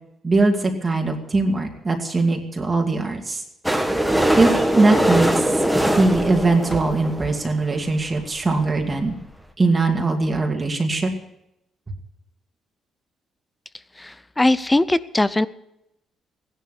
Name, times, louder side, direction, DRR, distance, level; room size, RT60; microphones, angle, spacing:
voice 1, 0.2-3.4 4.3-5.4 5.9-9.1 9.6-11.1, right 3 dB, 25° right, 2 dB, 2.3 m, -21 dB
sound 1, 3.6-7.5 8.2-8.3 8.5-8.6 8.7-8.9 9.2-9.3, right 1 dB, 5° right, 1.6 m, -21 dB
voice 2, 14.0-15.5, left 2 dB, 15° left, 16 dB, 0.6 m, -20 dB
16.0 x 11.0 x 6.9 m, 0.83 s
cardioid pair, 90°, 0 cm